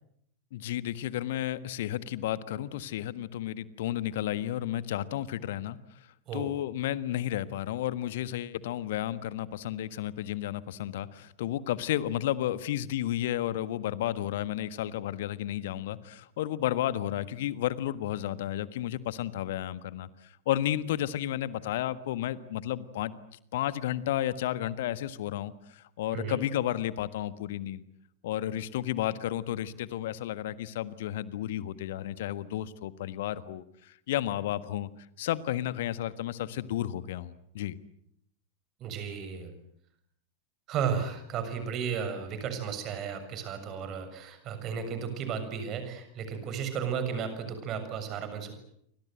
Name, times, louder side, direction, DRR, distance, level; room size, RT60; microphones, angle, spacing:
voice 1, 0.5-5.8 6.3-23.1 23.5-27.8 28.2-34.9 35.2-37.8, left 12 dB, 55° left, 15 dB, 1.5 m, -32 dB
voice 2, 38.8-39.5 40.7-48.5, right 7 dB, 35° right, 9 dB, 6.9 m, -34 dB
29.0 x 25.0 x 8.0 m, 0.72 s
figure-of-eight pair, 90°, 0 cm